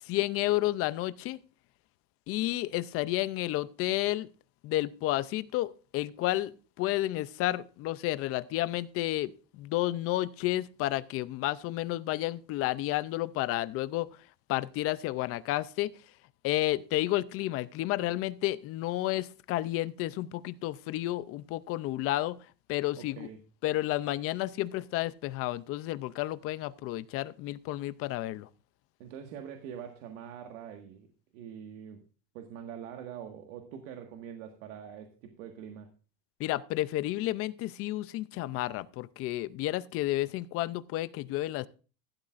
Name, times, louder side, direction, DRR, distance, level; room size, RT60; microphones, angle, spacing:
voice 1, 0.1-1.4 2.3-4.3 4.6-6.5 6.8-14.1 14.5-15.9 16.4-22.4 22.7-23.3 23.6-28.5 36.4-41.7, left 16 dB, 35° left, 0.5 m, -31 dB
voice 2, 23.0-23.4 29.0-31.1 31.3-32.0 32.3-35.9, right 8 dB, 80° right, 1.7 m, -44 dB
15.5 x 12.0 x 2.5 m
cardioid pair, 160°, 39 cm